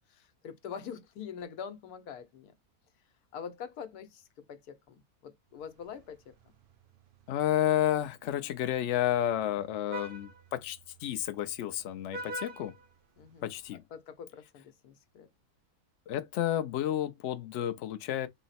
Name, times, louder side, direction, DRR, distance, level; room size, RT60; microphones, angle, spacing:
voice 1, 0.1-2.5 3.3-6.4 13.2-13.5 13.9-15.3, left 7 dB, 90° left, 1.3 m, -44 dB
Vehicle horn car horn honking, 5.6-13.7, right 2 dB, 70° right, 0.5 m, -48 dB
voice 2, 7.3-12.7 13.4-13.8 16.1-18.3, left 12 dB, 65° left, 0.8 m, -31 dB
3.9 x 2.0 x 4.0 m
omnidirectional pair, 1.6 m